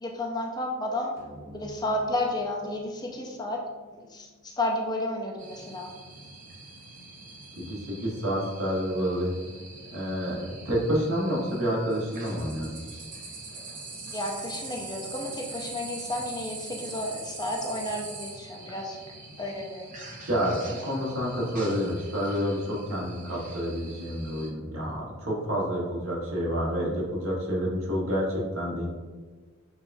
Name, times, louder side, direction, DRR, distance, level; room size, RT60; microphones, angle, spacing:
voice 1, 0.0-1.1 1.5-3.6 3.9-5.9 14.1-19.0 19.4-19.9, left 1 dB, 20° left, 0 dB, 0.4 m, -32 dB
sound 1, 1.2-5.8, left 1 dB, 15° right, 0.9 m, -51 dB
sound 2, 5.4-24.5, right 3 dB, 35° right, 0.6 m, -43 dB
voice 2, 7.6-9.3 9.9-12.8 18.7-18.8 20.2-28.9, equal, 75° right, -5 dB, 1.2 m, -29 dB
6.2 x 2.3 x 2.6 m, 1.4 s
head